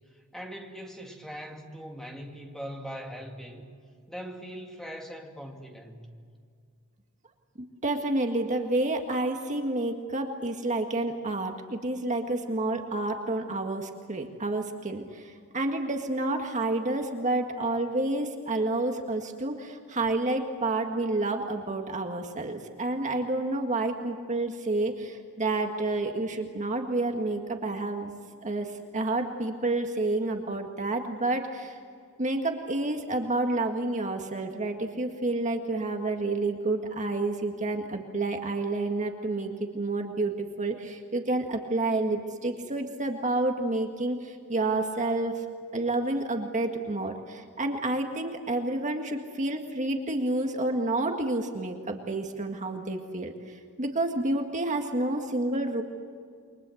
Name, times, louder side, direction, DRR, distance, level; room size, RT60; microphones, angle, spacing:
voice 1, 0.1-3.6 4.1-6.1, equal, ahead, 2 dB, 2.7 m, -41 dB
voice 2, 7.8-28.1 28.4-31.8 32.2-45.4 45.7-55.8, right 2 dB, 35° right, 4 dB, 1.8 m, -29 dB
29.0 x 24.5 x 7.9 m, 2.2 s
head